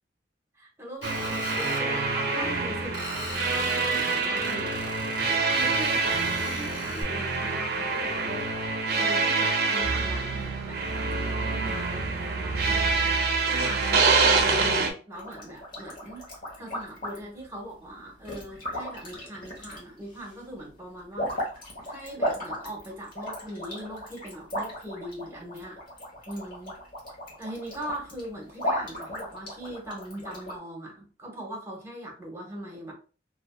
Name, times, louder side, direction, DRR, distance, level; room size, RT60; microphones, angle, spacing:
voice 1, 0.5-4.9 5.5-8.5 8.9-12.9 13.5-16.3 16.6-21.4 21.8-25.8 26.3-26.8 27.4-32.9, equal, 15° right, -2 dB, 0.8 m, -40 dB
Screech, 1.0-1.8 2.9-7.0, equal, 85° left, 1.2 m, -38 dB
sound 1, 1.0-14.9, right 4 dB, 55° right, 0.5 m, -26 dB
sound 2, 15.1-17.5 18.3-20.2 20.4-30.6, equal, 50° left, 1.0 m, -35 dB
2.5 x 2.3 x 2.2 m, 0.37 s
head